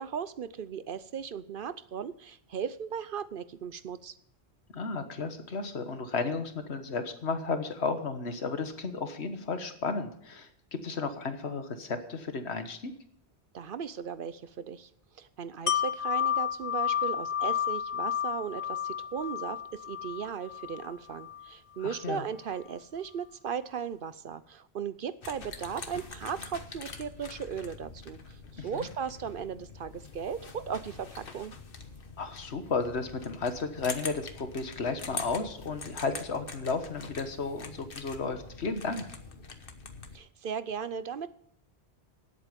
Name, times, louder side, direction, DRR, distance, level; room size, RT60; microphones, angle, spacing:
voice 1, 0.0-4.2 13.5-14.9 15.1-31.5 40.1-41.3, right 7 dB, 60° right, 15 dB, 0.8 m, -37 dB
voice 2, 4.7-12.9 21.8-22.2 28.6-28.9 32.2-39.1, left 4 dB, 75° left, 8 dB, 1.6 m, -33 dB
Wind chime, 15.7-21.5 21.9-22.0, left 9 dB, 40° left, 0.5 m, -31 dB
sound 1, 25.2-40.2, left 4 dB, 55° left, 1.3 m, -44 dB
17.5 x 8.4 x 5.2 m, 0.69 s
omnidirectional pair, 1.1 m